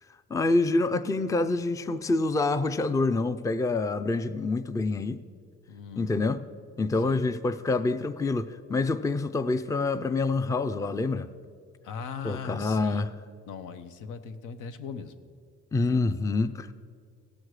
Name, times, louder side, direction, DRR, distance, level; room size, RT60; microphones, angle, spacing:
voice 1, 0.3-5.2 6.0-6.4 6.8-11.3 12.2-13.1 15.7-16.7, left 3 dB, 10° left, 11 dB, 0.4 m, -26 dB
voice 2, 5.7-6.1 7.0-7.2 11.8-13.0 13.5-15.1, left 6 dB, 85° left, 9 dB, 0.7 m, -39 dB
16.5 x 6.4 x 4.8 m, 2.1 s
cardioid pair, 90°, 30 cm